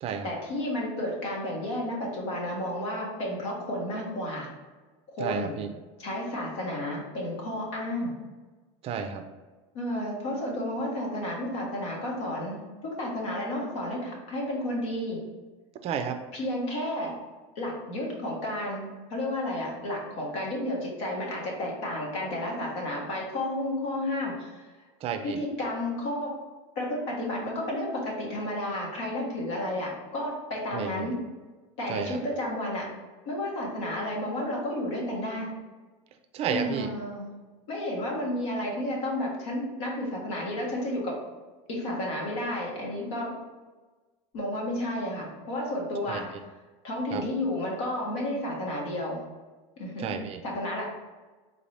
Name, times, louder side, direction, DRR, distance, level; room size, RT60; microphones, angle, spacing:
voice 1, 0.2-4.5 5.1-5.6 6.0-8.1 9.7-12.6 12.8-15.2 16.3-17.1 17.5-24.9 25.2-26.3 26.7-31.2 31.8-32.9 33.2-35.5 36.5-37.2 37.7-41.1 41.7-43.3 44.3-46.3 46.8-49.2 49.8-50.1 50.4-50.8, left 1 dB, 80° left, -2 dB, 1.3 m, -32 dB
voice 2, 5.2-5.7 8.8-9.2 15.8-16.2 25.0-25.4 30.7-31.1 31.9-32.2 36.3-36.9 46.1-46.2 47.1-47.2 50.0-50.4, right 7 dB, 40° right, 7 dB, 0.4 m, -31 dB
3.8 x 2.7 x 3.2 m, 1.3 s
supercardioid pair, 125°, 16 cm